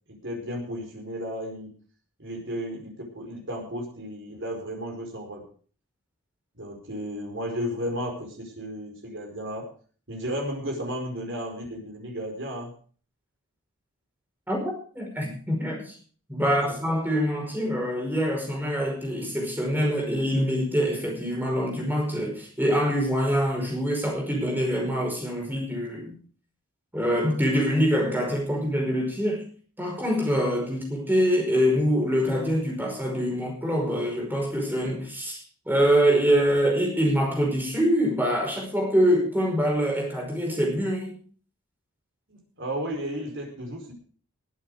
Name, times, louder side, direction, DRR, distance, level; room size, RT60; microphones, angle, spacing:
voice 1, 0.1-1.7 2.2-5.4 6.5-9.7 10.1-12.7 16.4-16.7 42.3-43.9, equal, 55° right, 2 dB, 4.7 m, -34 dB
voice 2, 14.5-15.9 16.3-26.1 26.9-29.4 29.8-35.4 35.6-41.2, equal, 10° right, 0 dB, 5.1 m, -25 dB
20.0 x 8.5 x 4.9 m, 0.43 s
head